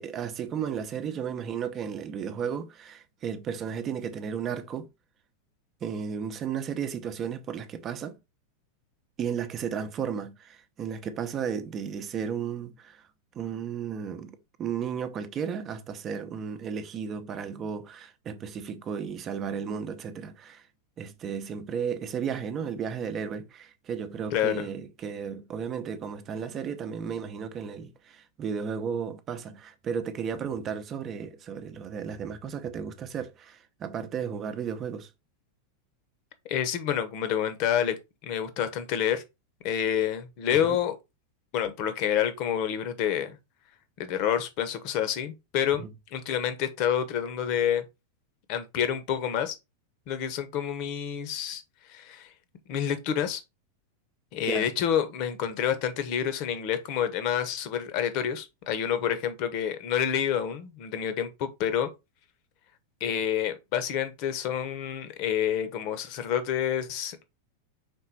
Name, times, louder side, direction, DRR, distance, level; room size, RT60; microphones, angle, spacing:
voice 1, 0.0-4.9 5.8-8.2 9.2-13.1 13.3-20.7 21.0-35.1 40.5-40.8 45.8-45.9 54.5-54.7, right 7 dB, 30° right, 0.8 m, -34 dB
voice 2, 24.3-24.7 36.5-38.0 38.2-39.2 39.6-41.0 41.5-43.4 44.0-47.8 48.5-49.6 50.1-51.6 51.9-52.3 52.7-53.4 54.3-61.9 63.0-67.2, left 9 dB, 45° left, 1.1 m, -28 dB
5.4 x 4.1 x 4.2 m
figure-of-eight pair, 90°, 0 cm